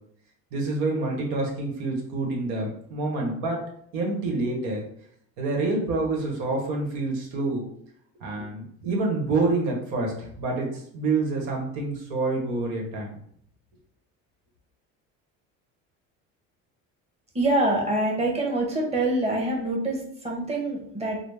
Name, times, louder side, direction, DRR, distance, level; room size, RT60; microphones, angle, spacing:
voice 1, 0.5-3.6 3.9-4.8 5.4-7.6 8.2-13.2, right 3 dB, 80° right, 0 dB, 1.2 m, -27 dB
voice 2, 17.3-21.2, right 1 dB, 15° right, -2 dB, 1.1 m, -25 dB
3.9 x 2.0 x 3.4 m, 0.67 s
supercardioid pair, 100°, 36 cm